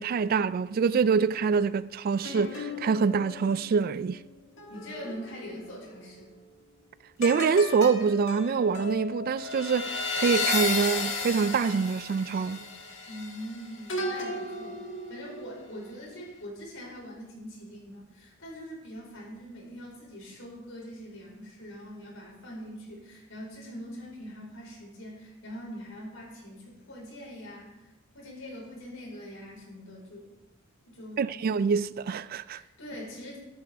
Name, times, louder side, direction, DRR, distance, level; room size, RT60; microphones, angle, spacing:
voice 1, 0.0-4.2 7.2-12.6 31.2-32.6, right 5 dB, 45° right, 0.3 m, -25 dB
sound 1, 2.2-5.9 7.2-15.7 16.2-16.4, left 3 dB, 65° left, 1.7 m, -34 dB
voice 2, 4.7-6.3 13.1-14.8 15.1-30.3 30.8-31.2 32.4-33.4, equal, 85° left, 4.8 m, -43 dB
14.0 x 11.5 x 3.5 m
head